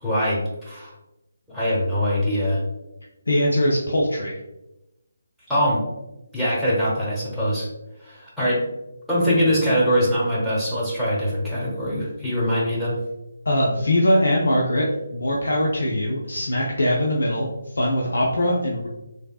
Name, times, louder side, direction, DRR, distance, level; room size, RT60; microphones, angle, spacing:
voice 1, 0.0-0.9 1.5-2.6 5.5-5.8 6.3-7.7 8.0-8.6 9.1-13.0, equal, ahead, -9 dB, 1.1 m, -22 dB
voice 2, 3.3-4.4 13.5-14.9 15.1-18.9, left 1 dB, 70° left, -3 dB, 0.5 m, -21 dB
3.2 x 2.6 x 2.3 m, 0.93 s
figure-of-eight pair, 150°, 0 cm